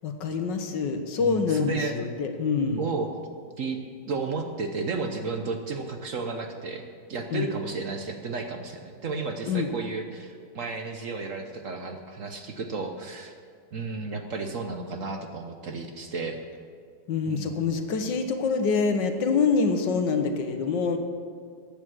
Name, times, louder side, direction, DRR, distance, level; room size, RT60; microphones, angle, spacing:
voice 1, 0.0-2.8 7.3-7.5 9.5-9.7 17.1-21.0, left 5 dB, 75° left, 7 dB, 1.7 m, -26 dB
voice 2, 1.2-2.0 2.8-3.1 3.6-13.3 13.7-16.4 17.3-17.6, right 4 dB, 55° right, 5 dB, 1.1 m, -33 dB
14.5 x 9.0 x 6.2 m, 2.1 s
omnidirectional pair, 2.0 m